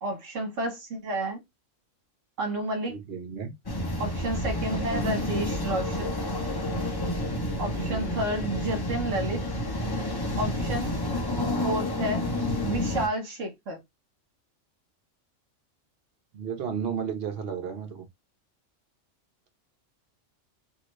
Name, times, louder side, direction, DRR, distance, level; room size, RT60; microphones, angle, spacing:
voice 1, 0.0-1.4 2.4-3.0 4.0-6.2 7.6-9.4 10.4-11.0 11.6-12.2 12.6-13.8, right 1 dB, 75° right, 1.3 m, -30 dB
voice 2, 2.9-3.5 7.7-8.2 16.3-18.1, right 7 dB, 55° right, 0.9 m, -33 dB
sound 1, 3.7-13.1, left 1 dB, 30° left, 0.5 m, -29 dB
2.9 x 2.5 x 3.0 m
omnidirectional pair, 1.3 m